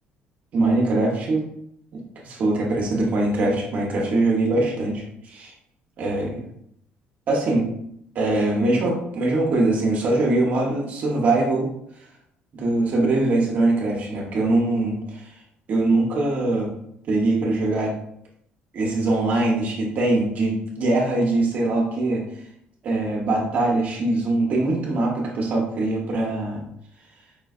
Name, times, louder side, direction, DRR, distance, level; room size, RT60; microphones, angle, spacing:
voice 1, 0.5-1.4 1.9-5.5 6.0-6.4 7.3-7.7 8.1-11.7 12.5-15.3 15.7-16.7 17.1-17.9 18.7-22.2 22.8-26.6, right 2 dB, 45° right, -1 dB, 0.9 m, -22 dB
5.0 x 3.1 x 2.4 m, 0.72 s
cardioid pair, 150°, 3 cm